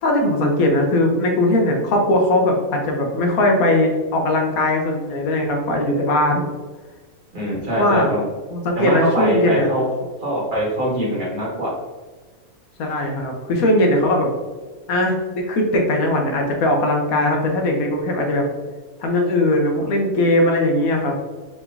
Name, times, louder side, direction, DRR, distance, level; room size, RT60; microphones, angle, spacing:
voice 1, 0.0-6.5 7.7-8.1 8.5-9.7 12.8-14.3 14.9-18.4 19.0-21.2, left 1 dB, 85° left, 2 dB, 1.4 m, -19 dB
voice 2, 7.3-8.2 8.7-9.8 10.2-11.7, right 1 dB, 35° right, -6 dB, 1.8 m, -22 dB
4.9 x 3.7 x 2.6 m, 1.3 s
omnidirectional pair, 1.4 m